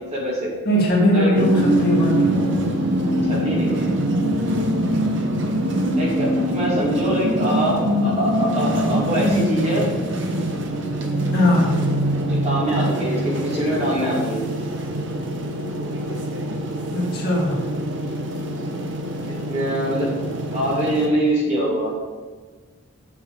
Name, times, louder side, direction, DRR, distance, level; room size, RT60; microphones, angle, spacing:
voice 1, 0.0-0.5 1.1-1.3 3.1-3.9 5.9-9.9 12.2-14.5 19.3-20.1 20.5-21.9, right 1 dB, 30° right, -5 dB, 2.5 m, -24 dB
voice 2, 0.7-2.3 11.3-11.7 16.9-17.6, equal, 45° left, -3 dB, 1.9 m, -19 dB
sound 1, 1.4-21.1, right 1 dB, 55° right, 1.0 m, -23 dB
7.4 x 6.0 x 6.7 m, 1.4 s
head